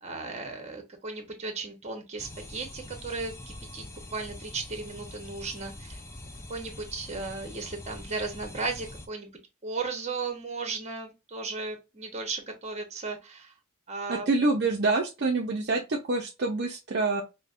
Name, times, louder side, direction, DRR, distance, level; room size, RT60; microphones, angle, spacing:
voice 1, 0.0-6.0 6.5-9.3 9.6-13.5 13.9-14.3, right 4 dB, 30° right, 0.8 m, -36 dB
sound 1, 2.2-9.1, left 1 dB, 15° left, 0.3 m, -44 dB
voice 2, 14.1-17.2, right 3 dB, 45° right, 0.5 m, -26 dB
5.0 x 2.1 x 2.4 m
head